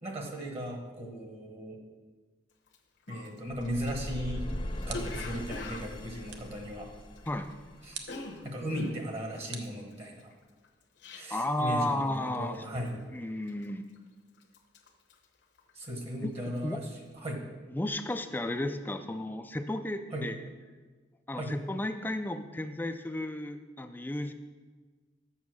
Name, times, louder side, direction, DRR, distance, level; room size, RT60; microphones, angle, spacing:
voice 1, 0.0-1.8 3.1-4.5 4.9-6.9 7.8-8.0 8.4-10.3 11.1-13.0 15.7-16.8 17.1-17.4 20.1-20.3 21.3-21.5, equal, 35° right, 2 dB, 1.2 m, -37 dB
Cough, 2.7-2.8 3.1-7.5 7.8-11.6 11.9-12.2 12.5-13.0 13.5-14.1 14.4-16.0 16.4-16.7, left 2 dB, 65° left, 0.9 m, -44 dB
sound 1, 3.5-8.5, left 1 dB, 25° left, 0.7 m, -40 dB
sound 2, 4.9-5.4 6.3-6.7 7.9-8.3 9.5-10.4, right 6 dB, 70° right, 0.8 m, -46 dB
voice 2, 11.3-12.7 13.1-13.9 16.2-16.3 16.6-16.8 17.7-20.4 21.3-24.3, left 1 dB, 10° left, 8 dB, 0.3 m, -33 dB
7.1 x 6.4 x 6.2 m, 1.4 s
head